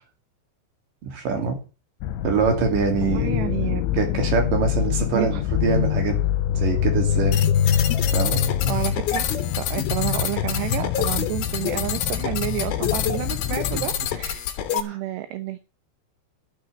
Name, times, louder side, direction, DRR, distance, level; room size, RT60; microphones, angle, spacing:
voice 1, 1.0-1.6 2.2-3.3 3.9-6.2 6.5-7.4 8.1-8.4 13.7-13.9 14.8-15.0, right 5 dB, 50° right, 3 dB, 4.1 m, -24 dB
sound 1, 2.0-13.8, left 10 dB, 85° left, 3.1 m, -25 dB
voice 2, 3.0-3.8 5.1-5.4 8.6-9.3 9.5-14.5 14.7-15.6, right 14 dB, 75° right, 10 dB, 2.8 m, -30 dB
sound 2, 7.3-14.8, left 10 dB, 65° left, 2.7 m, -28 dB
12.0 x 6.4 x 8.3 m, 0.34 s
omnidirectional pair, 5.3 m